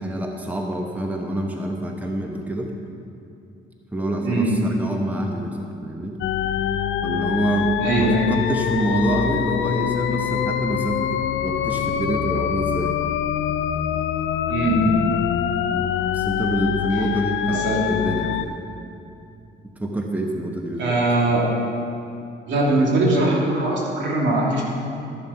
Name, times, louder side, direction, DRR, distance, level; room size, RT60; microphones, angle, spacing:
voice 1, 0.0-2.7 3.9-6.2 7.0-7.7 8.0-11.2 11.4-13.0 15.7-15.9 16.1-18.5 19.8-21.0, right 1 dB, 10° right, 1 dB, 1.0 m, -26 dB
sound 1, 6.2-18.5, left 9 dB, 75° left, 0.5 m, -24 dB
voice 2, 7.8-8.3 14.5-15.0 17.5-17.8 20.8-21.5 22.5-24.6, right 2 dB, 70° right, -3 dB, 2.7 m, -21 dB
13.0 x 7.1 x 5.8 m, 2.6 s
cardioid pair, 90°, 20 cm